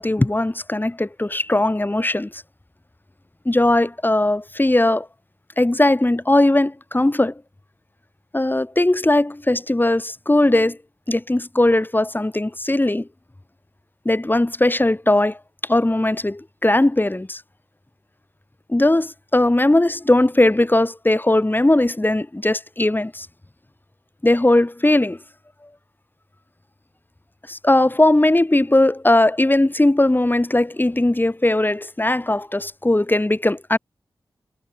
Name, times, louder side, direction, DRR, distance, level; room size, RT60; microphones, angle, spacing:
voice 1, 0.0-2.4 3.4-5.1 5.6-7.3 8.3-10.8 11.1-13.1 14.0-15.4 15.7-17.4 18.7-23.3 24.2-25.2 27.5-33.8, left 1 dB, 25° left, 6.1 m, -19 dB
cardioid pair, 45°, 8 cm